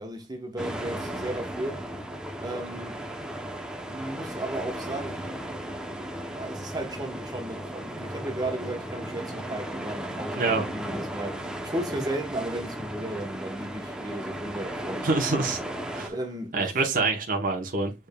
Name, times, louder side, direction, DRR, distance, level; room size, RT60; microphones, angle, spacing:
voice 1, 0.0-1.8 2.4-3.0 3.9-5.3 6.2-15.0 16.1-16.7, right 1 dB, 20° right, 1.0 m, -35 dB
sound 1, 0.6-16.1, right 1 dB, 5° right, 0.7 m, -35 dB
voice 2, 15.0-15.6 15.9-16.1 16.5-17.9, right 3 dB, 50° right, 0.9 m, -26 dB
6.8 x 3.5 x 2.2 m
head